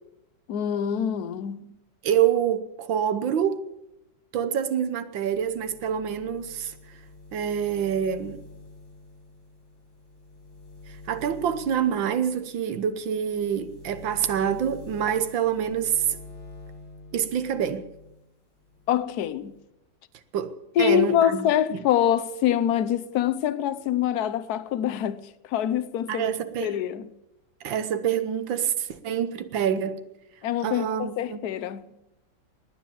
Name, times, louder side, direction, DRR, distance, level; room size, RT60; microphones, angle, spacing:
voice 1, 0.5-1.8 18.9-19.6 20.8-26.3 26.6-27.1 30.4-32.0, left 10 dB, 60° left, 1.2 m, -25 dB
voice 2, 2.0-3.6 4.3-6.7 7.3-8.4 10.9-16.1 17.1-17.9 20.3-21.5 26.1-26.7 27.6-30.0 30.6-31.4, right 9 dB, 80° right, 1.8 m, -26 dB
sound 1, 5.3-18.3 18.6-19.6, left 3 dB, 85° left, 3.4 m, -47 dB
19.0 x 9.8 x 7.1 m
omnidirectional pair, 2.0 m